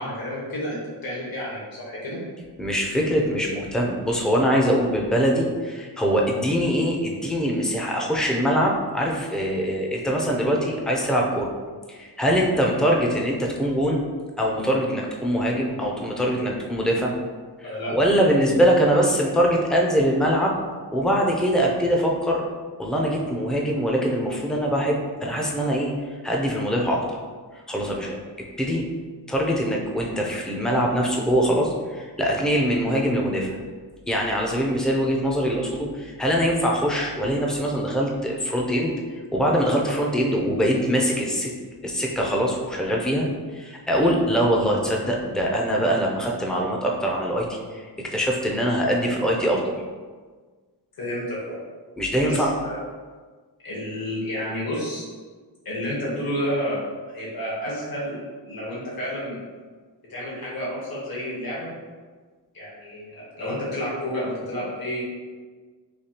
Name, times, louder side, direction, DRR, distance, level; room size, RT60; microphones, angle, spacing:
voice 1, 0.0-2.2 17.6-17.9 51.0-51.6 52.2-52.8 53.6-55.0 55.6-58.2 58.4-59.4 60.1-61.7 62.5-65.0, equal, 60° left, -7 dB, 1.2 m, -30 dB
voice 2, 2.6-11.5 11.9-14.0 14.4-17.1 17.6-20.5 20.9-22.4 22.8-25.9 26.2-27.0 27.7-28.2 28.6-28.9 29.3-33.6 34.1-41.5 41.8-43.3 43.5-49.7 52.0-52.5, equal, ahead, -1 dB, 0.5 m, -23 dB
4.9 x 2.3 x 2.8 m, 1.5 s
wide cardioid pair, 115°, 41 cm